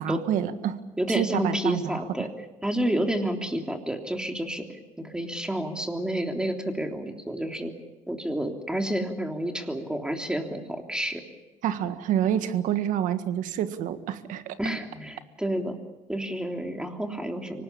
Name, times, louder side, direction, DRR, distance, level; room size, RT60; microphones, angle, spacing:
voice 1, 0.0-0.8 1.1-2.0 11.6-14.6, right 10 dB, 75° right, 10 dB, 1.7 m, -27 dB
voice 2, 1.0-2.3 2.6-7.7 8.1-11.2 14.6-15.8 16.1-17.6, right 1 dB, 5° right, 4 dB, 3.4 m, -29 dB
25.0 x 19.0 x 8.7 m, 1.1 s
cardioid pair, 95°, 13 cm